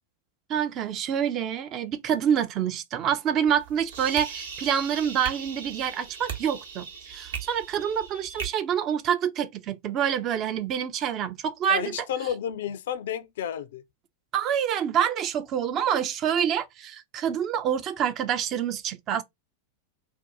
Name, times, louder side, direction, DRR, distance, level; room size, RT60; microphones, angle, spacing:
voice 1, 0.5-11.9 14.3-19.2, right 9 dB, 35° right, 0.4 m, -27 dB
sound 1, 3.5-8.5, right 6 dB, 60° right, 0.9 m, -38 dB
voice 2, 11.7-13.8, left 9 dB, 60° left, 0.4 m, -31 dB
2.7 x 2.2 x 3.6 m
figure-of-eight pair, 90°, 0 cm